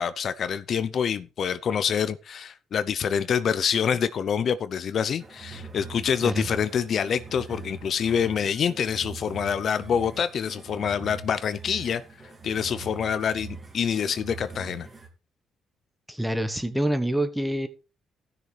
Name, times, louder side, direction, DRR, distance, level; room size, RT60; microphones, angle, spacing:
voice 1, 0.0-12.0 12.4-14.9, left 7 dB, 60° left, 0.6 m, -26 dB
sound 1, 5.2-15.1, right 4 dB, 30° right, 2.4 m, -42 dB
voice 2, 16.1-17.7, right 1 dB, 5° right, 1.3 m, -26 dB
15.5 x 6.6 x 3.3 m
cardioid pair, 90°, 0 cm